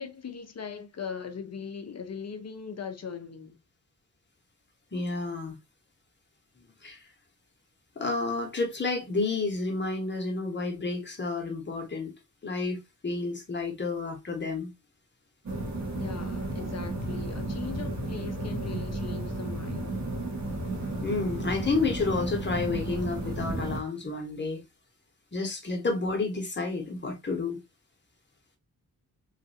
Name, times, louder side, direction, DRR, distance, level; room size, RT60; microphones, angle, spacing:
voice 1, 0.0-3.6 16.0-20.0, left 6 dB, 50° left, 0.7 m, -39 dB
voice 2, 4.9-5.6 6.6-7.0 8.0-12.1 12.4-14.7 21.0-24.6 25.3-27.6, left 3 dB, 35° left, 1.0 m, -30 dB
sound 1, 15.5-23.8, right 2 dB, 55° right, 1.2 m, -33 dB
3.2 x 2.5 x 2.5 m
wide cardioid pair, 105°, 33 cm